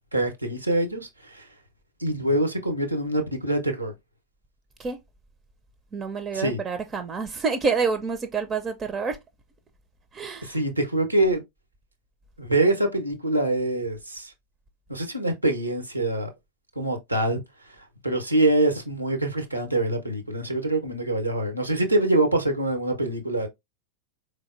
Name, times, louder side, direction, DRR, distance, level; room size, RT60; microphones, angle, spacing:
voice 1, 0.1-1.5 2.0-3.9 6.3-6.6 10.4-11.4 12.4-14.3 14.9-16.3 16.8-17.4 18.0-23.5, right 1 dB, 85° right, 0.7 m, -24 dB
voice 2, 5.9-9.2 10.1-10.6, right 5 dB, 20° right, 0.5 m, -28 dB
3.9 x 3.3 x 2.5 m
figure-of-eight pair, 90°, 0 cm